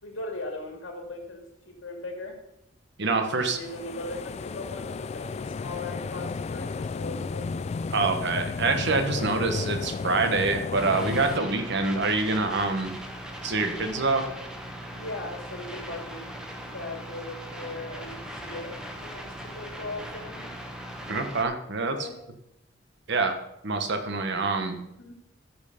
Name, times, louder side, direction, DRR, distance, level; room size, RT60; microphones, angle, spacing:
voice 1, 0.0-2.4 3.0-7.5 9.1-9.3 14.9-16.3 16.6-18.7 19.0-20.5 21.8-22.2 25.0-25.2, left 2 dB, 80° left, 2 dB, 2.7 m, -39 dB
voice 2, 3.0-3.6 7.9-12.9 13.4-14.2 21.1-22.1 23.1-23.3 23.6-24.8, right 3 dB, 65° right, 7 dB, 1.2 m, -26 dB
sound 1, 3.4-11.4, left 4 dB, 35° left, 0.3 m, -33 dB
sound 2, 10.8-21.4, equal, 5° right, 1.2 m, -39 dB
13.0 x 5.5 x 5.2 m, 0.81 s
head